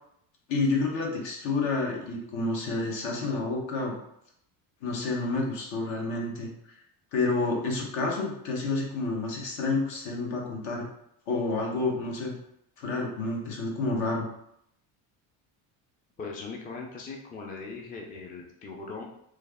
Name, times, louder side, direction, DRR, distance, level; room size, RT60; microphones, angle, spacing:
voice 1, 0.5-4.0 4.8-6.5 7.1-10.9 11.3-12.3 12.8-14.3, left 3 dB, 65° left, -1 dB, 1.2 m, -29 dB
voice 2, 16.2-19.0, left 4 dB, 20° left, 0 dB, 0.4 m, -39 dB
3.3 x 2.4 x 3.4 m, 0.75 s
cardioid pair, 115°, 48 cm